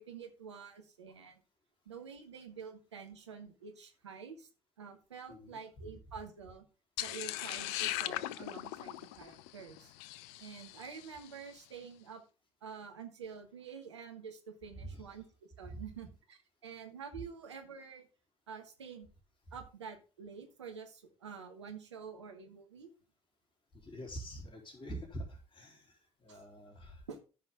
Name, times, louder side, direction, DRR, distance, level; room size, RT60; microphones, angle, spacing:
voice 1, 0.0-1.4 1.8-4.5 4.8-6.6 7.0-9.9 10.4-12.2 12.6-15.2 15.6-18.1 18.5-19.1 19.5-22.9 26.3-26.4 27.1-27.2, right 6 dB, 80° right, 4 dB, 1.4 m, -48 dB
voice 2, 5.3-5.9 14.7-15.1 15.6-15.8 23.7-27.0, right 1 dB, 30° left, -5 dB, 3.6 m, -46 dB
sound 1, 7.0-11.3, left 15 dB, 60° left, 0.4 m, -39 dB
14.0 x 5.6 x 3.7 m, 0.33 s
figure-of-eight pair, 50°, 15 cm